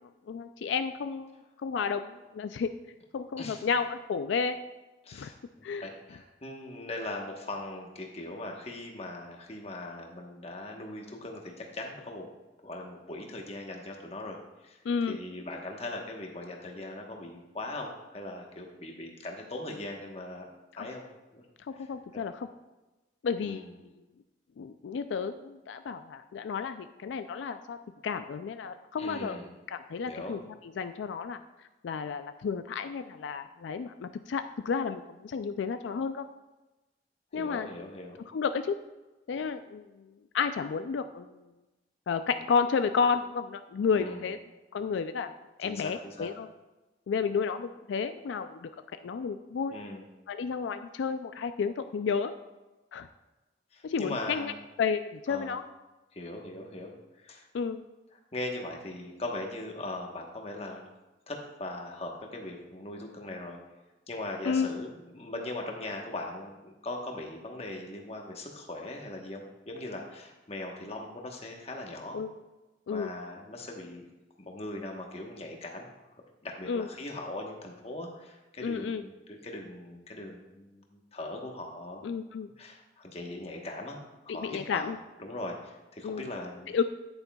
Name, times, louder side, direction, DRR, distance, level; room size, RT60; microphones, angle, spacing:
voice 1, 0.3-2.7 3.1-4.6 5.1-5.3 5.6-5.9 14.8-15.2 21.7-22.5 23.2-23.9 24.6-27.8 28.0-30.4 30.8-31.4 31.8-36.3 37.3-37.7 38.3-38.8 39.3-39.9 40.3-41.3 42.1-44.4 44.7-45.3 45.6-46.5 47.1-48.7 49.0-49.8 50.3-52.3 52.9-53.1 53.8-54.5 54.8-55.6 57.5-57.8 64.4-64.7 72.1-72.3 72.9-73.1 76.7-76.9 78.6-79.0 82.0-82.5 84.3-85.0 86.0-86.3 86.7-86.8, left 5 dB, 85° left, 10 dB, 0.3 m, -31 dB
voice 2, 5.0-12.3 12.6-14.8 15.1-20.5 20.8-21.0 21.3-21.4 21.7-21.9 22.1-22.2 23.4-23.7 29.0-29.5 30.0-30.4 37.3-38.2 43.9-44.2 45.6-46.3 49.7-50.0 53.7-54.6 55.3-55.6 56.1-57.5 58.3-60.9 61.3-63.6 64.1-72.2 72.9-74.0 74.4-82.0 82.6-84.0 84.2-84.9 85.2-86.8, left 2 dB, 35° left, 1 dB, 1.1 m, -40 dB
9.7 x 8.9 x 2.3 m, 1.1 s
head